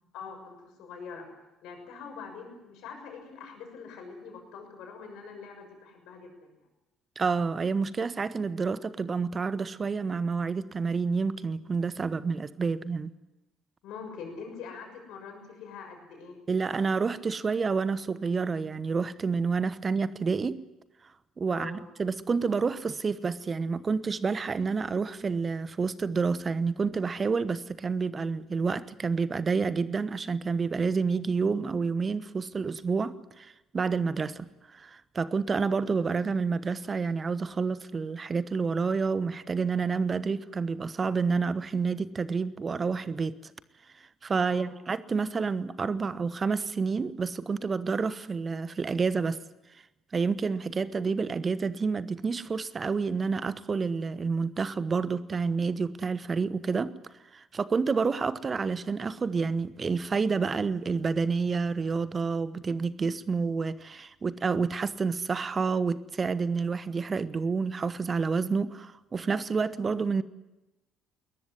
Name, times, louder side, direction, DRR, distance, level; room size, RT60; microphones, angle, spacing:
voice 1, 0.1-1.3 1.6-6.6 13.8-16.4 21.5-21.8 44.5-44.7, left 5 dB, 60° left, 6.6 m, -44 dB
voice 2, 7.2-13.1 16.5-20.6 21.4-43.5 44.2-49.4 50.1-56.9 57.3-70.2, right 5 dB, 30° right, 1.1 m, -29 dB
21.5 x 20.5 x 9.7 m
figure-of-eight pair, 50°, 0 cm